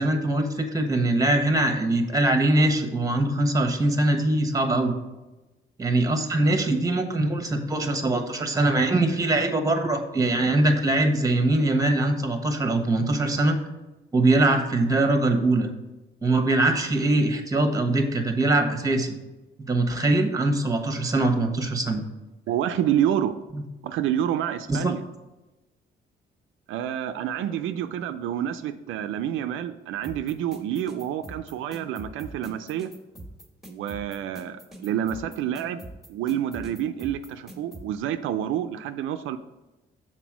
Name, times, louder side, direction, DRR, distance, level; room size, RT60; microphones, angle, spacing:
voice 1, 0.0-4.9 5.8-13.6 14.1-15.7 16.2-19.2 19.7-22.0 23.5-23.6 24.7-24.9, right 2 dB, 15° right, 6 dB, 1.1 m, -22 dB
voice 2, 22.5-23.3 23.8-25.0 26.7-32.9 33.7-35.8 36.1-39.4, right 10 dB, 85° right, 9 dB, 0.4 m, -28 dB
sound 1, 30.0-37.8, right 1 dB, ahead, 1.5 m, -42 dB
6.0 x 4.4 x 6.0 m, 1.1 s
cardioid pair, 90°, 20 cm